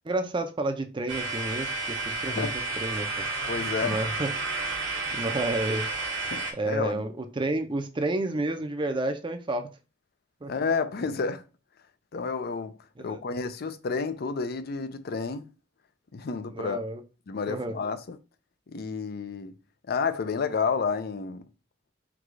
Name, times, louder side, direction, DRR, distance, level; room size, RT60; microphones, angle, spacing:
voice 1, 0.0-2.5 2.8-3.2 3.8-4.3 5.1-6.0 6.5-9.7 10.4-10.5 13.0-13.2 16.5-17.0 17.5-17.8, right 2 dB, 25° right, 0.5 m, -30 dB
sound 1, 1.1-6.5, right 3 dB, 85° right, 1.3 m, -31 dB
voice 2, 2.3-2.6 3.5-4.0 6.3-7.0 10.5-11.4 12.1-12.7 13.0-15.5 16.1-16.8 17.3-18.2 18.7-19.6 19.9-21.4, left 5 dB, 55° left, 0.5 m, -30 dB
4.7 x 2.4 x 3.7 m
head